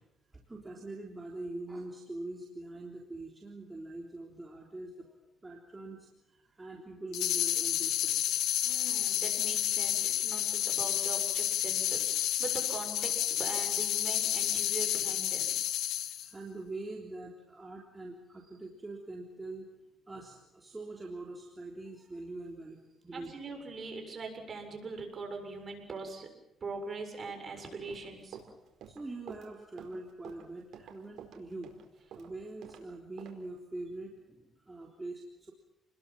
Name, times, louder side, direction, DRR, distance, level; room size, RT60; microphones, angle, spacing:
voice 1, 0.3-5.2 5.4-8.4 16.0-19.7 20.1-23.3 28.9-31.7 32.1-35.5, right 2 dB, 15° right, -1 dB, 3.6 m, -44 dB
sound 1, 7.1-16.3, left 11 dB, 90° left, 1.7 m, -30 dB
voice 2, 8.6-15.5 23.1-26.3 26.6-28.4, right 4 dB, 35° right, 3 dB, 7.2 m, -42 dB
Run, 27.7-32.8 33.2-33.3, right 8 dB, 70° right, 4.6 m, -49 dB
30.0 x 21.5 x 7.5 m, 0.88 s
cardioid pair, 120°, 0 cm